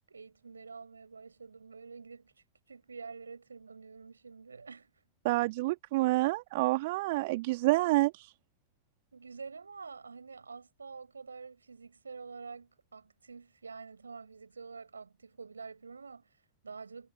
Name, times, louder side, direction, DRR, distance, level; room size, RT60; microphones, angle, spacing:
voice 1, 0.1-2.3 2.7-4.9 9.1-17.1, right 5 dB, 75° right, 7.0 m, -47 dB
voice 2, 5.2-8.3, right 20 dB, 50° right, 2.2 m, -28 dB
figure-of-eight pair, 90°, 0 cm